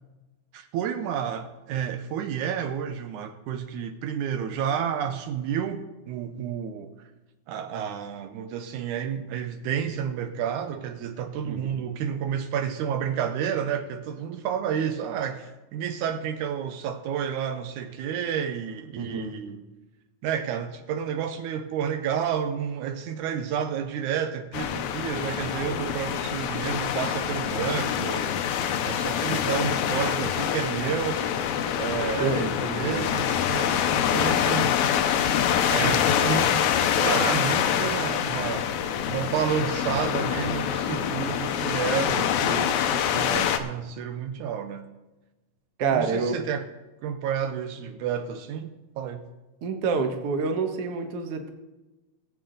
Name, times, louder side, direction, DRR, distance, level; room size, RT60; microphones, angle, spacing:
voice 1, 0.5-6.9 7.5-19.6 20.2-28.4 28.9-31.2 31.8-34.7 35.7-36.6 36.9-44.8 45.9-46.7 47.0-48.7 49.0-49.3, right 8 dB, 80° right, 8 dB, 2.1 m, -30 dB
voice 2, 19.0-19.4 32.2-32.5 32.9-33.1 35.8-36.2 45.8-46.3 49.6-51.5, right 4 dB, 60° right, 5 dB, 1.9 m, -27 dB
sound 1, 24.5-43.6, left 9 dB, 75° left, 2.0 m, -25 dB
18.5 x 8.2 x 3.9 m, 1.1 s
omnidirectional pair, 3.5 m